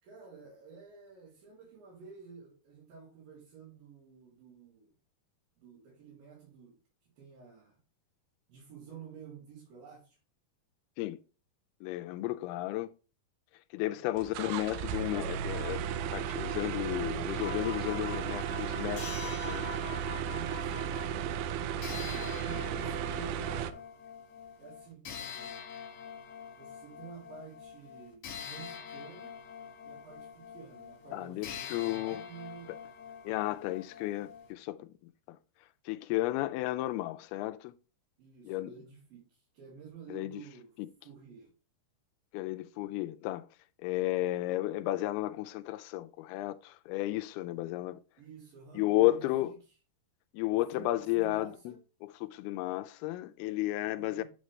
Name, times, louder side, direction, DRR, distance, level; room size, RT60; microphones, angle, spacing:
voice 1, 0.0-4.9 5.6-6.8 7.2-7.8 8.5-10.2 13.9-14.3 20.2-21.7 22.1-23.8 24.6-25.6 26.6-29.4 29.8-32.8 38.2-40.7 41.0-41.5 48.2-49.6 50.5-51.8 53.8-54.2, right 6 dB, 65° right, 4.7 m, -51 dB
voice 2, 11.8-12.9 13.7-15.8 16.1-19.7 31.1-32.2 33.2-34.9 35.3-35.4 35.9-37.7 38.5-38.7 40.1-40.4 40.8-40.9 42.3-43.5 43.8-48.0 48.8-49.5 50.3-51.8 52.0-54.2, left 17 dB, 90° left, 2.5 m, -33 dB
sound 1, 14.2-23.7, right 8 dB, 90° right, 1.8 m, -35 dB
sound 2, 17.4-21.1 21.8-34.5, left 8 dB, 55° left, 2.5 m, -45 dB
8.8 x 6.4 x 3.2 m
omnidirectional pair, 4.4 m